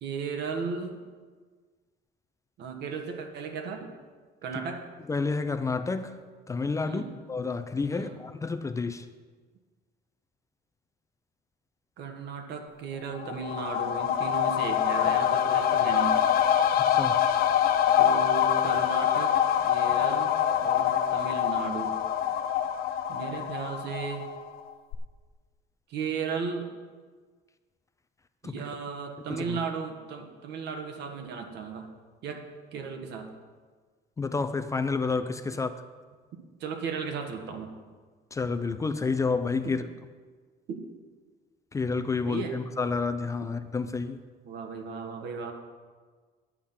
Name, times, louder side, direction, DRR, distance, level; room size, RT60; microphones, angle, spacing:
voice 1, 0.0-1.0 2.6-3.9 4.4-4.8 6.8-7.1 7.9-8.1 12.0-16.2 18.0-19.3 19.7-20.3 20.6-22.0 23.1-24.3 25.9-26.7 28.4-31.9 32.2-32.4 32.7-33.3 36.6-37.8 39.6-39.8 40.7-40.8 42.3-42.6 44.4-45.5, right 5 dB, 65° right, 1.5 m, -35 dB
voice 2, 5.1-6.2 6.5-9.1 16.9-17.4 28.4-28.6 29.3-29.6 34.2-35.7 38.3-39.8 41.7-44.2, left 4 dB, 15° left, 0.4 m, -30 dB
sound 1, 13.2-24.6 24.9-25.0, left 9 dB, 55° left, 0.7 m, -25 dB
10.0 x 8.6 x 5.7 m
cardioid pair, 150°, 19 cm